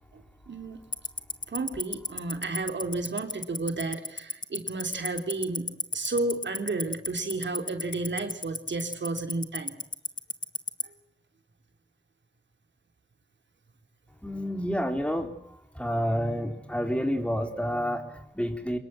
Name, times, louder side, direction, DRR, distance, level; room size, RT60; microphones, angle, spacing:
voice 1, 0.1-0.8 1.5-9.7, right 3 dB, 85° right, 6 dB, 3.2 m, -32 dB
Tick-tock, 0.9-10.8, left 3 dB, 45° left, 1.7 m, -29 dB
voice 2, 14.2-15.3 15.8-18.8, equal, 5° left, 6 dB, 3.7 m, -29 dB
25.0 x 21.5 x 7.7 m, 0.75 s
wide cardioid pair, 70°, 18 cm